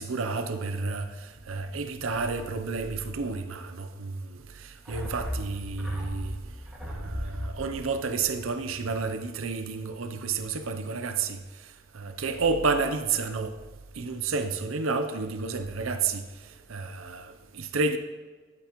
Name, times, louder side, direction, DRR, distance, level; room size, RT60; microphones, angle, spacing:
voice 1, 0.0-6.4 6.8-11.4 11.9-13.6 14.0-16.3 16.7-18.0, right 4 dB, 80° right, 0.7 m, -30 dB
sound 1, 4.9-9.5 9.7-9.8, equal, 5° right, 2.1 m, -38 dB
12.5 x 7.8 x 3.1 m
head